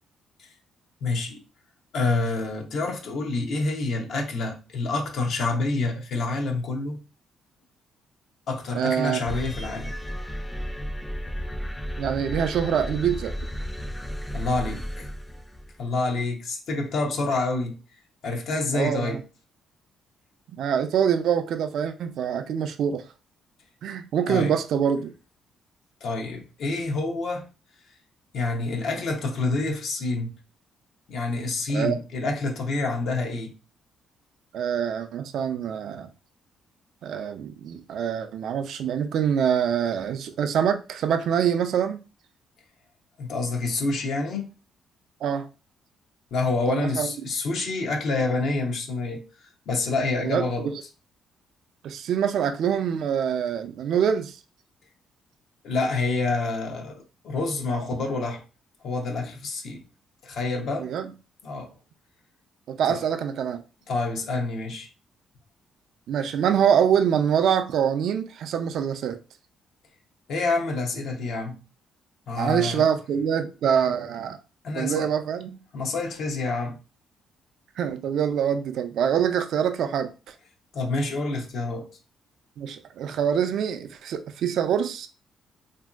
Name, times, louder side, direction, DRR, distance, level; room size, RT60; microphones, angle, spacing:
voice 1, 1.0-1.4 1.9-7.0 8.5-9.9 14.3-15.1 15.8-17.8 18.2-19.2 24.3-24.6 26.0-27.5 28.3-30.3 31.1-33.6 43.2-44.5 46.3-49.3 49.7-50.7 55.6-58.4 58.8-59.8 60.2-60.9 61.4-61.7 62.9-63.0 63.9-64.9 70.3-71.6 72.3-72.9 74.6-75.1 75.7-76.8 80.7-81.9, left 3 dB, 70° left, 0.6 m, -27 dB
voice 2, 8.7-9.3 12.0-13.3 18.7-19.2 20.5-23.0 23.8-25.1 31.7-32.0 34.5-36.1 37.0-42.0 45.2-45.5 46.7-47.1 50.2-50.8 51.8-54.4 60.8-61.1 62.7-63.6 66.1-69.2 72.4-74.4 74.8-75.6 77.8-80.3 82.6-85.1, right 8 dB, 75° right, 0.3 m, -25 dB
sound 1, 9.3-15.9, equal, 10° left, 0.3 m, -33 dB
3.0 x 2.5 x 2.3 m
cardioid pair, 90°, 0 cm